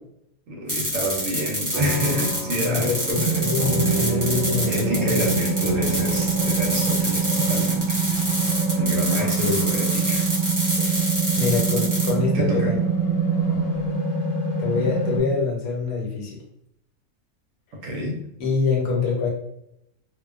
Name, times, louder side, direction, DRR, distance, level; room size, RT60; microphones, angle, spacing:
voice 1, 0.5-4.4 4.7-8.0 8.7-10.3 11.0-11.1 12.3-12.7 17.8-18.3, equal, 70° right, 0 dB, 0.9 m, -29 dB
sound 1, 0.7-12.1, equal, 25° right, 0.4 m, -27 dB
sound 2, 1.7-10.5, right 3 dB, 90° right, 0.4 m, -34 dB
voice 2, 2.6-5.3 9.2-9.6 11.4-12.8 14.6-16.4 18.4-19.3, left 4 dB, 75° left, -1 dB, 1.2 m, -25 dB
sound 3, 3.1-15.2, right 5 dB, 50° left, 0.9 m, -24 dB
2.4 x 2.2 x 2.3 m, 0.77 s
omnidirectional pair, 1.6 m